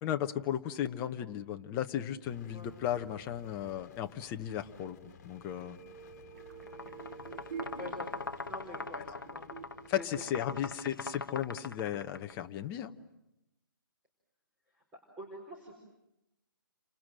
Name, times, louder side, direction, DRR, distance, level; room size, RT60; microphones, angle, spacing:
voice 1, 0.0-5.0 5.2-5.8 9.9-12.9, left 10 dB, 20° left, 7 dB, 1.0 m, -35 dB
sound 1, 2.2-11.4, left 6 dB, 40° left, 2.1 m, -57 dB
sound 2, 5.3-11.0 11.4-11.5, right 6 dB, 50° right, 5.2 m, -48 dB
sound 3, 6.6-12.3, left 3 dB, 70° left, 1.0 m, -42 dB
voice 2, 7.8-8.1 8.4-9.5 10.0-10.1 14.7-14.8 15.2-15.7, left 1 dB, 10° right, -1 dB, 4.3 m, -45 dB
30.0 x 26.0 x 7.7 m, 0.91 s
figure-of-eight pair, 135°, 12 cm